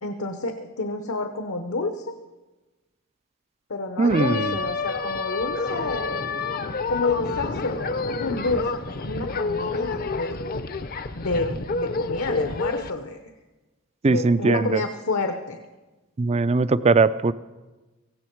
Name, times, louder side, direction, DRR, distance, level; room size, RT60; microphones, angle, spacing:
voice 1, 0.0-2.0 3.7-6.3 6.9-10.4 11.1-13.2 14.1-15.6, left 3 dB, 70° left, 6 dB, 0.9 m, -29 dB
voice 2, 4.0-4.6 14.0-14.8 16.2-17.3, right 3 dB, 30° right, 16 dB, 0.4 m, -20 dB
sound 1, 4.1-12.9, left 3 dB, 40° left, 0.6 m, -29 dB
17.5 x 16.0 x 4.6 m, 1.2 s
head